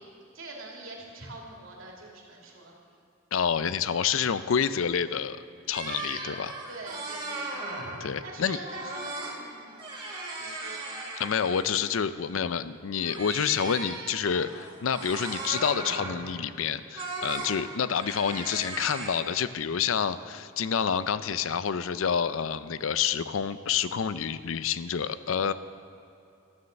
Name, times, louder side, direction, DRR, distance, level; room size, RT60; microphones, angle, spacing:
voice 1, 0.0-2.7 6.7-7.6 8.2-9.8 10.4-10.8, right 2 dB, 90° right, -2 dB, 2.8 m, -44 dB
voice 2, 3.3-5.4 5.7-6.6 8.0-8.6 11.2-25.5, left 7 dB, 80° left, 14 dB, 0.5 m, -28 dB
sound 1, 5.7-8.1 8.6-9.4 9.7-11.9 13.0-16.3 16.9-17.5 17.9-19.1, right 2 dB, 25° right, 2.2 m, -37 dB
13.0 x 9.4 x 6.5 m, 2.6 s
head